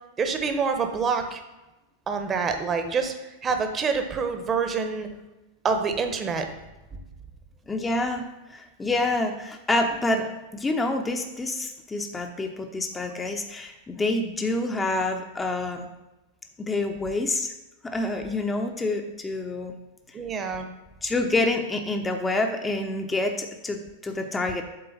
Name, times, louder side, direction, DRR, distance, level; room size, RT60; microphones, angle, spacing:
voice 1, 0.2-1.4 2.1-3.1 3.4-5.1 5.6-6.5 20.1-20.7, right 5 dB, 25° right, 6 dB, 0.9 m, -26 dB
voice 2, 7.7-15.9 16.6-17.5 17.8-19.7 21.0-24.6, left 2 dB, 15° left, 4 dB, 0.6 m, -27 dB
7.9 x 3.8 x 5.4 m, 1.0 s
figure-of-eight pair, 90°, 0 cm